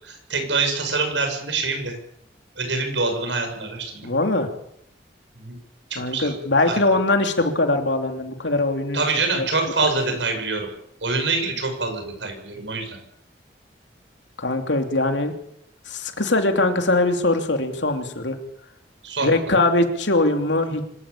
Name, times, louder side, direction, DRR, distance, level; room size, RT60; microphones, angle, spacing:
voice 1, 0.0-1.9 2.6-4.1 5.4-5.6 5.9-6.3 6.7-6.8 8.9-10.7 11.0-13.0 19.0-19.5, right 3 dB, 90° right, 5 dB, 7.1 m, -25 dB
voice 2, 4.0-4.5 6.0-9.0 9.3-9.5 14.4-15.3 15.9-18.4 19.2-20.8, left 2 dB, 90° left, 5 dB, 3.1 m, -21 dB
25.5 x 14.0 x 8.6 m, 0.76 s
head